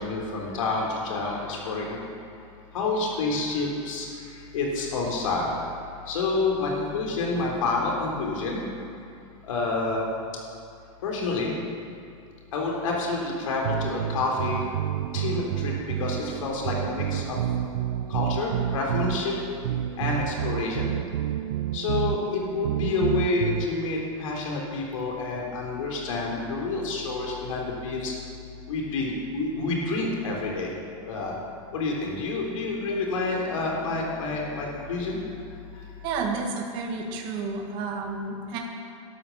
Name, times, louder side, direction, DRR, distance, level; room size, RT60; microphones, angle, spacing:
voice 1, 0.0-2.0 2.7-4.1 4.5-5.5 6.1-8.6 9.4-10.0 11.0-11.5 12.5-14.6 15.1-15.7 16.0-17.4 18.1-19.4 20.0-20.9 21.7-28.1 28.7-30.7 31.1-31.4 31.7-35.2, left 3 dB, 90° left, -1 dB, 3.5 m, -28 dB
sound 1, 13.6-23.7, right 11 dB, 75° right, 0.6 m, -29 dB
voice 2, 36.0-38.6, right 4 dB, 30° right, 1 dB, 1.7 m, -31 dB
13.0 x 12.5 x 7.1 m, 2.7 s
supercardioid pair, 175°, 16 cm